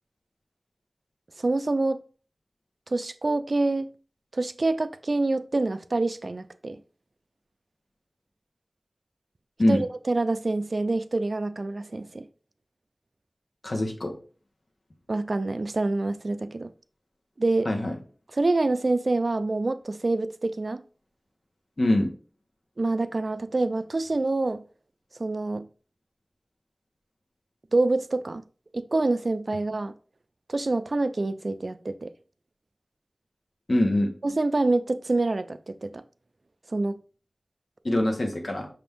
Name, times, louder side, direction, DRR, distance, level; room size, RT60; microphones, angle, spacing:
voice 1, 1.4-2.0 2.9-3.9 4.3-6.8 9.7-12.3 15.1-16.7 17.4-17.7 18.3-20.8 22.8-24.6 25.2-25.7 27.7-28.4 28.7-29.9 30.5-32.1 34.2-36.0 36.7-37.0, right 2 dB, 60° right, 0.3 m, -26 dB
voice 2, 13.6-14.2 17.6-17.9 21.8-22.1 33.7-34.1 37.8-38.7, left 1 dB, 60° left, 1.0 m, -23 dB
5.9 x 2.6 x 3.5 m
wide cardioid pair, 65°, 0 cm